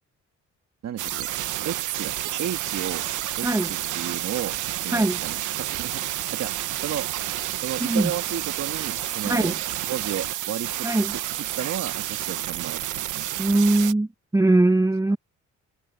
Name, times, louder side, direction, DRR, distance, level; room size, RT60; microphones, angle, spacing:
voice 1, 0.8-1.3 1.7-3.1 3.4-6.5 6.8-7.1 7.6-9.6 9.8-10.9 11.3-13.4, right 10 dB, 60° right, 1.8 m, -33 dB
sound 1, 1.0-13.9, right 13 dB, 80° right, 1.2 m, -30 dB
voice 2, 10.8-11.1 13.4-14.1 14.3-15.2, right 2 dB, 10° right, 1.2 m, -20 dB
cardioid pair, 90°, 30 cm